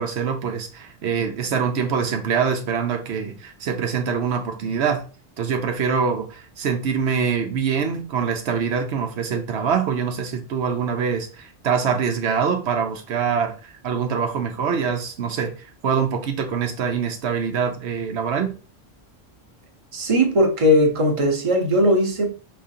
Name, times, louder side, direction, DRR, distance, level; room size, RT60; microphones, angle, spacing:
voice 1, 0.0-5.0 5.4-18.5, right 6 dB, 85° right, 1.0 m, -24 dB
voice 2, 19.9-22.4, equal, 35° right, 0.9 m, -18 dB
4.8 x 3.2 x 2.7 m
omnidirectional pair, 1.1 m